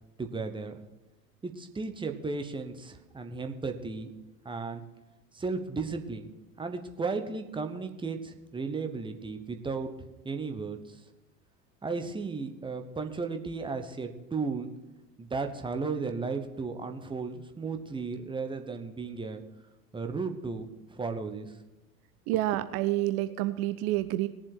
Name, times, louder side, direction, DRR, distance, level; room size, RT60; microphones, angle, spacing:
voice 1, 0.2-0.8 1.4-4.1 4.4-4.8 5.3-6.3 6.6-9.9 10.2-11.0 11.8-14.7 15.2-19.4 19.9-20.7 20.9-21.5, right 4 dB, 10° right, 6 dB, 1.0 m, -35 dB
voice 2, 22.3-24.3, right 15 dB, 30° right, 12 dB, 0.5 m, -28 dB
20.0 x 7.4 x 4.7 m, 1.1 s
figure-of-eight pair, 80°, 50 cm